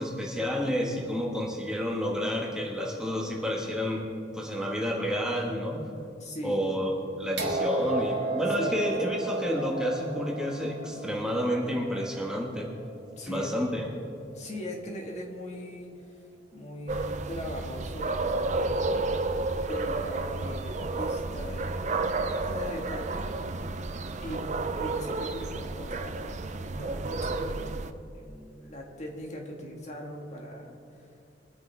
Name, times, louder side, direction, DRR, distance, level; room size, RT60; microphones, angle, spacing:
voice 1, 0.0-4.1 4.3-5.8 6.4-6.9 7.2-12.7 13.2-13.9, equal, 5° right, -2 dB, 1.6 m, -30 dB
voice 2, 6.2-6.6 8.6-8.9 13.2-13.6 13.9-14.0 14.3-16.2 16.5-19.1 19.6-23.3 24.2-27.8 28.1-31.1, equal, 40° left, 0 dB, 1.8 m, -40 dB
sound 1, 7.4-13.2 14.3-14.4, right 2 dB, 85° right, 2.0 m, -34 dB
sound 2, 16.9-27.9, right 3 dB, 40° right, 0.6 m, -31 dB
22.5 x 9.3 x 3.5 m, 2.5 s
head